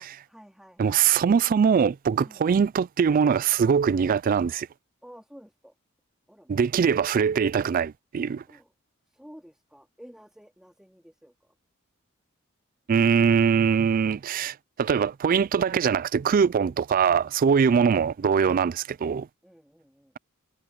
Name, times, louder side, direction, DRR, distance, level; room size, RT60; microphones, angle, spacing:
voice 1, 0.0-1.1 2.2-2.5 5.0-5.7 6.3-6.6 8.5-8.7 9.1-11.5 19.4-20.2, equal, 5° right, 2.6 m, -51 dB
voice 2, 0.8-4.7 6.5-8.4 12.9-19.3, right 6 dB, 40° right, 0.3 m, -22 dB
head